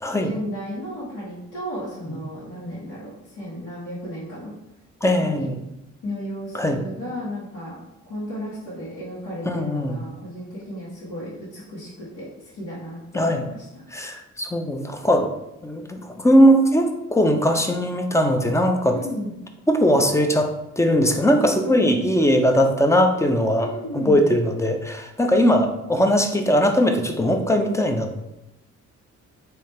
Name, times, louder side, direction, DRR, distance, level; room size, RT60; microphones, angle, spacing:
voice 1, 0.1-4.5 5.2-5.5 6.0-7.8 8.0-13.8 18.9-19.3 21.6-22.0 23.6-24.3, equal, 85° left, -9 dB, 1.4 m, -34 dB
voice 2, 5.0-5.6 6.5-6.8 9.5-10.0 13.1-13.4 13.9-15.3 15.6-19.0 19.7-28.2, equal, 10° left, 5 dB, 0.5 m, -20 dB
3.5 x 2.8 x 4.2 m, 0.90 s
cardioid pair, 90°, 30 cm